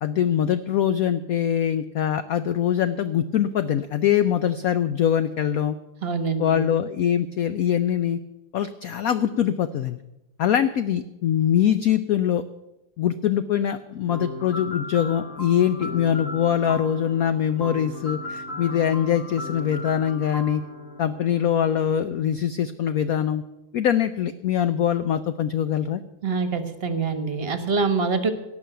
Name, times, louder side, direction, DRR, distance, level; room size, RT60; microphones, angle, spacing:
voice 1, 0.0-5.8 6.4-8.2 8.5-10.0 10.4-12.4 13.0-20.6 21.0-23.4 23.7-26.0, left 9 dB, 75° left, 11 dB, 0.8 m, -23 dB
voice 2, 6.0-6.6 26.2-28.3, right 4 dB, 35° right, 9 dB, 1.3 m, -25 dB
sound 1, 14.1-21.9, left 2 dB, 40° left, 2.6 m, -36 dB
18.0 x 6.3 x 9.1 m, 0.94 s
omnidirectional pair, 2.2 m